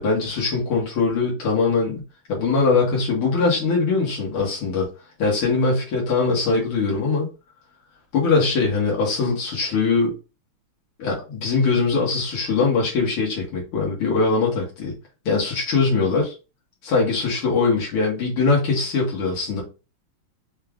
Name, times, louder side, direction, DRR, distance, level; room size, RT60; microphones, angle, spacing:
voice 1, 0.0-2.0 2.3-4.9 5.2-7.3 8.1-10.1 11.0-15.0 15.3-16.4 16.8-19.6, left 4 dB, 90° left, -3 dB, 2.4 m, -21 dB
5.6 x 2.4 x 3.6 m, 0.31 s
omnidirectional pair, 2.3 m